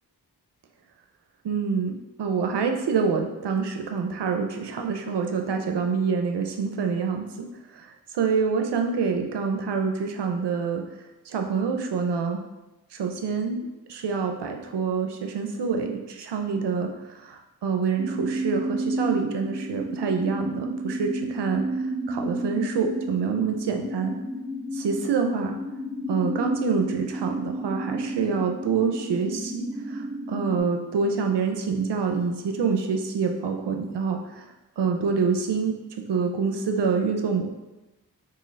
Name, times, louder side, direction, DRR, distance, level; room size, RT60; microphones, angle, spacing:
voice 1, 1.4-7.3 7.7-7.9 8.1-10.8 11.3-12.4 12.9-13.6 13.9-16.9 17.2-21.6 22.1-24.2 24.7-25.6 26.1-34.4 34.8-35.7 36.1-37.5, right 5 dB, 85° right, 4 dB, 0.5 m, -26 dB
sound 1, 18.0-30.6, right 1 dB, 15° left, 0.9 m, -32 dB
3.8 x 2.5 x 3.1 m, 1.0 s
cardioid pair, 45°, 40 cm